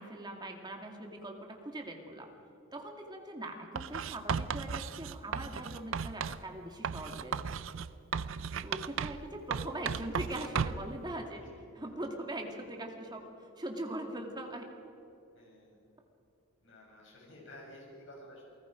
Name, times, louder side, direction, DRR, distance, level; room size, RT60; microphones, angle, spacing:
voice 1, 0.0-2.3 2.7-7.5 8.6-11.4 11.7-13.2 13.6-14.7, right 1 dB, 20° right, 2 dB, 2.2 m, -41 dB
Writing, 3.7-6.4 6.8-9.2 9.5-10.9, right 6 dB, 65° right, 0.5 m, -35 dB
voice 2, 8.3-8.7 9.3-9.9 11.3-11.5 15.3-15.8 16.6-18.5, left 1 dB, 60° left, -2 dB, 6.7 m, -54 dB
29.0 x 19.5 x 5.1 m, 2.8 s
head